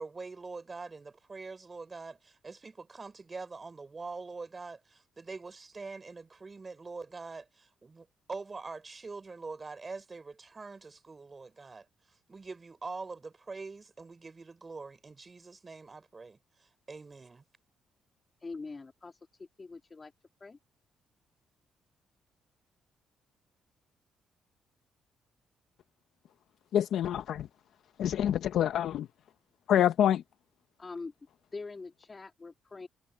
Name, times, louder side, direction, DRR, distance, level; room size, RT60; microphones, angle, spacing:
voice 1, 0.0-11.9 12.3-17.4, right 4 dB, 30° right, 4.2 m, -44 dB
voice 2, 18.4-19.2 19.6-20.1 20.4-20.6 30.8-31.1 31.5-32.9, left 3 dB, 30° left, 2.6 m, -43 dB
voice 3, 26.7-27.5 28.0-29.1 29.7-30.2, left 10 dB, 75° left, 0.8 m, -26 dB
cardioid pair, 90°, 0 cm